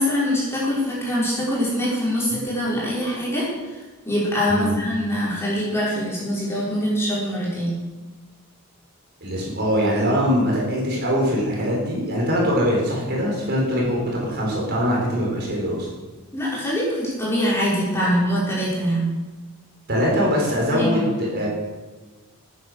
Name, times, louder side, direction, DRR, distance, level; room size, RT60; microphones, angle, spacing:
voice 1, 0.0-3.5 4.0-7.7 16.3-19.1 20.7-21.0, equal, 10° left, -7 dB, 5.5 m, -23 dB
voice 2, 9.2-15.9 19.9-21.5, equal, 50° right, -3 dB, 5.0 m, -22 dB
13.5 x 9.9 x 6.7 m, 1.3 s
head